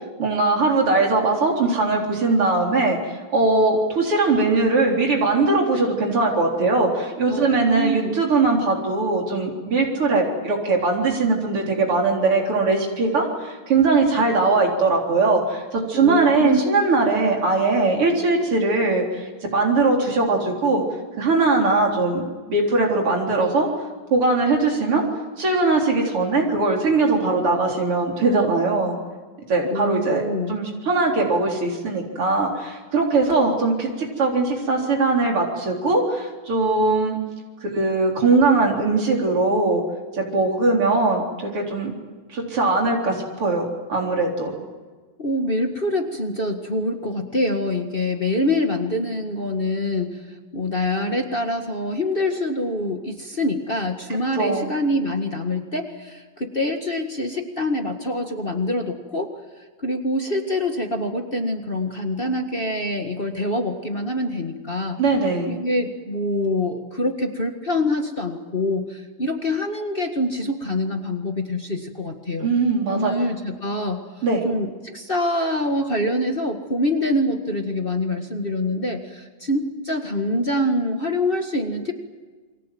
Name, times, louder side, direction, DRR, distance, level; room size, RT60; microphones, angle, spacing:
voice 1, 0.2-3.0 3.3-19.3 19.5-20.8 21.2-22.2 22.5-23.7 24.1-25.0 25.4-29.0 29.5-37.2 37.6-39.8 40.1-41.9 42.3-44.5 54.4-54.7 65.0-65.5 72.4-73.1 74.2-74.4, right 3 dB, 80° right, 0 dB, 4.8 m, -20 dB
voice 2, 7.3-8.2 15.9-16.6 29.7-30.6 45.2-50.3 50.5-59.3 59.8-65.0 65.5-72.5 72.9-74.0 74.4-81.9, left 1 dB, 25° left, 4 dB, 1.8 m, -25 dB
28.5 x 23.5 x 7.7 m, 1.4 s
omnidirectional pair, 2.4 m